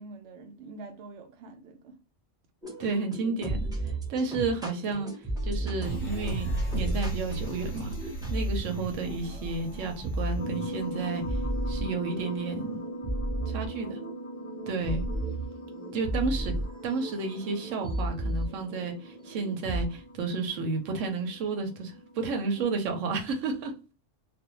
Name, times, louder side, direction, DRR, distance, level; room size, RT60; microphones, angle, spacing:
voice 1, 0.0-2.0 13.7-14.0 15.0-15.2 22.6-22.7, right 2 dB, 65° right, 0.8 m, -45 dB
sound 1, 2.6-19.9, right 1 dB, 5° right, 0.5 m, -34 dB
voice 2, 2.8-3.7 4.1-5.1 5.4-11.4 11.7-12.8 13.5-14.0 14.7-15.0 15.9-16.6 16.8-23.7, right 4 dB, 90° right, 1.0 m, -31 dB
sound 2, 5.8-11.4 11.8-11.9, right 2 dB, 35° left, 0.7 m, -37 dB
sound 3, 10.4-22.8, right 1 dB, 55° left, 0.3 m, -41 dB
2.5 x 2.1 x 2.9 m
omnidirectional pair, 1.3 m